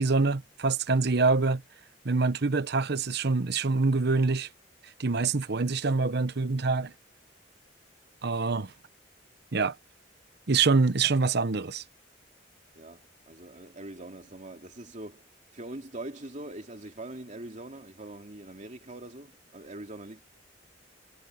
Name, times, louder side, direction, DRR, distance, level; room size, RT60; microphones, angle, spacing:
voice 1, 0.0-1.6 2.0-4.5 5.0-6.9 8.2-8.7 9.5-9.7 10.5-11.8, right 4 dB, 60° right, 0.9 m, -25 dB
voice 2, 12.7-20.2, right 1 dB, 40° right, 2.9 m, -43 dB
head